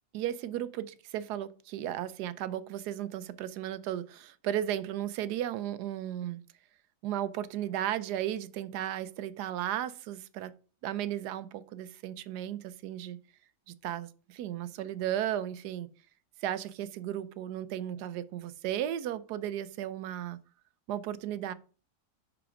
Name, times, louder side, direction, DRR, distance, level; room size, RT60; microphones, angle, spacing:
voice 1, 0.1-6.4 7.0-10.5 10.8-13.2 13.7-15.9 16.4-20.4 20.9-21.5, right 11 dB, 85° right, 1.2 m, -35 dB
5.9 x 4.8 x 5.0 m
omnidirectional pair, 1.7 m